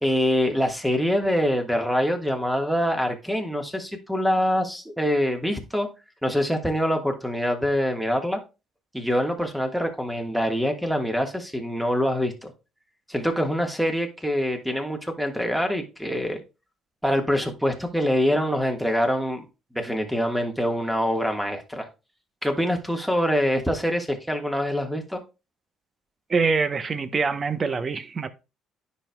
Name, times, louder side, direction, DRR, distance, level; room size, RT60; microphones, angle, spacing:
voice 1, 0.0-5.9 6.2-8.4 8.9-12.5 13.1-16.4 17.0-19.4 19.7-21.9 22.4-25.2, equal, ahead, 1.5 m, -25 dB
voice 2, 26.3-28.3, right 4 dB, 40° right, 0.8 m, -24 dB
9.7 x 5.4 x 2.3 m
supercardioid pair, 80°, 0 cm